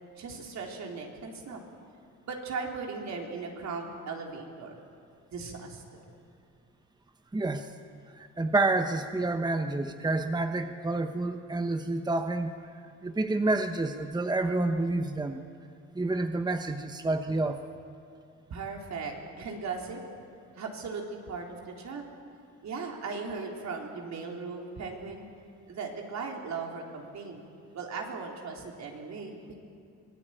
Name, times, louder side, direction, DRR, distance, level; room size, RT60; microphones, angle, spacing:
voice 1, 0.2-1.6 2.2-4.8 5.3-6.0 18.5-20.0 20.6-22.0 22.6-25.3 25.7-27.5 27.7-29.6, right 4 dB, 65° right, 1 dB, 4.0 m, -38 dB
voice 2, 7.3-7.7 8.1-15.4 15.9-17.6, right 2 dB, 15° right, 7 dB, 1.1 m, -29 dB
25.0 x 18.5 x 9.0 m, 2.4 s
cardioid pair, 90°, 30 cm